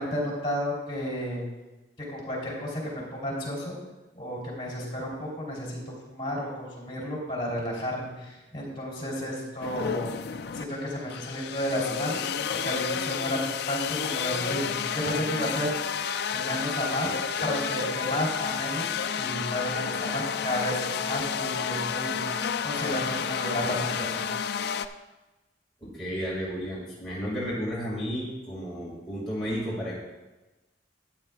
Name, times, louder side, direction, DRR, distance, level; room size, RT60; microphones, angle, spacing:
voice 1, 0.0-1.4 2.1-3.8 4.1-5.8 6.1-10.1 10.5-15.7 16.3-17.1 17.4-24.3, equal, 25° left, -5 dB, 3.3 m, -32 dB
sound 1, 9.6-24.9, left 7 dB, 60° left, 0.4 m, -31 dB
voice 2, 25.8-30.0, equal, ahead, -9 dB, 2.1 m, -32 dB
14.0 x 9.1 x 2.4 m, 1.1 s
head